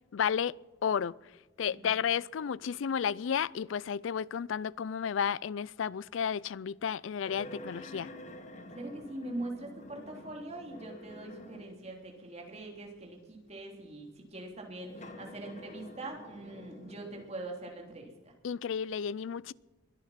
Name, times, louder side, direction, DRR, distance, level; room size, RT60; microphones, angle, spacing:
voice 1, 0.1-0.5 0.8-1.1 1.6-8.1 18.4-19.5, left 7 dB, 70° left, 0.4 m, -32 dB
sound 1, 7.2-11.9 12.6-12.7 14.8-17.4, left 1 dB, 35° left, 1.2 m, -48 dB
voice 2, 8.7-18.3, right 2 dB, 35° right, 3.2 m, -43 dB
22.0 x 9.8 x 5.8 m
head